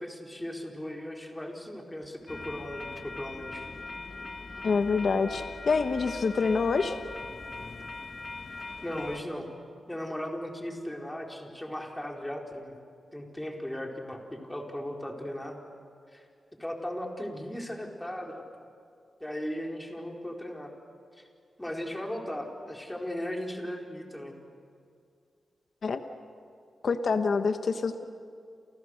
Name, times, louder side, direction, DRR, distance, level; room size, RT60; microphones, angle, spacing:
voice 1, 0.0-3.7 8.8-9.5 9.9-12.7 13.1-15.6 16.1-16.2 16.6-18.4 19.2-20.7 21.2-21.3 21.6-24.4, left 1 dB, 10° left, 0 dB, 4.5 m, -37 dB
sound 1, 2.3-9.2, left 3 dB, 35° left, 1.7 m, -41 dB
voice 2, 4.6-6.9 25.8-26.0 26.8-28.0, left 4 dB, 60° left, 7 dB, 1.3 m, -26 dB
29.0 x 29.0 x 6.6 m, 2.3 s
wide cardioid pair, 90°, 0 cm